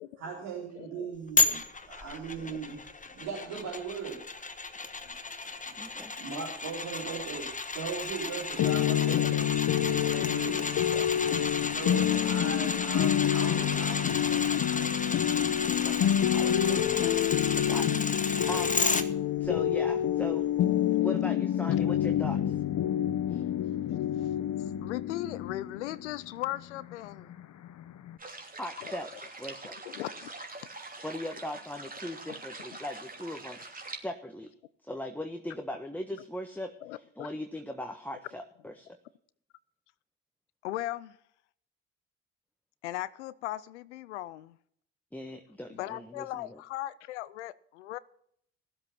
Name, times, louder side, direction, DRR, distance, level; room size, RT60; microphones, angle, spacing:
voice 1, 0.2-1.6 1.9-2.8 3.1-4.4 5.4-5.6 6.2-10.6 11.7-15.3, right 5 dB, 75° right, -5 dB, 4.0 m, -39 dB
voice 2, 0.8-1.2 1.4-1.7 2.4-2.6 9.0-9.4 24.2-24.3 24.8-27.3 28.8-28.9 29.8-30.5 32.3-32.4 36.8-37.3 40.6-41.2 42.8-44.6 45.7-48.0, left 15 dB, 85° left, 20 dB, 0.5 m, -38 dB
sound 1, 1.4-19.0 19.5-19.6, left 3 dB, 20° left, 1.4 m, -33 dB
voice 3, 5.8-6.1 10.1-10.6 10.9-11.1 15.8-18.8 19.4-20.5 21.0-22.6 23.3-23.4 28.6-29.8 31.0-34.5 34.8-39.0 45.1-46.6, left 1 dB, 5° left, 5 dB, 1.4 m, -40 dB
sound 2, 8.6-28.2, left 11 dB, 55° left, 1.0 m, -28 dB
sound 3, 28.2-34.0, right 3 dB, 25° right, 3.0 m, -44 dB
16.5 x 7.8 x 5.8 m, 0.68 s
hypercardioid pair, 50°, 34 cm